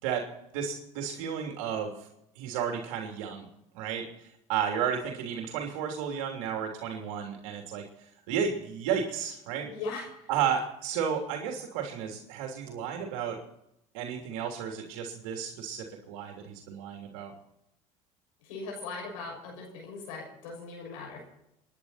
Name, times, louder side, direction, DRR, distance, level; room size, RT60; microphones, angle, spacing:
voice 1, 0.0-2.1 2.3-3.5 3.7-7.8 8.3-9.7 10.3-13.4 13.9-17.3, right 7 dB, 80° right, 2 dB, 3.1 m, -33 dB
voice 2, 9.7-10.3 18.4-21.2, left 3 dB, 85° left, 0 dB, 6.5 m, -39 dB
26.5 x 11.0 x 4.3 m, 0.82 s
supercardioid pair, 80°, 17 cm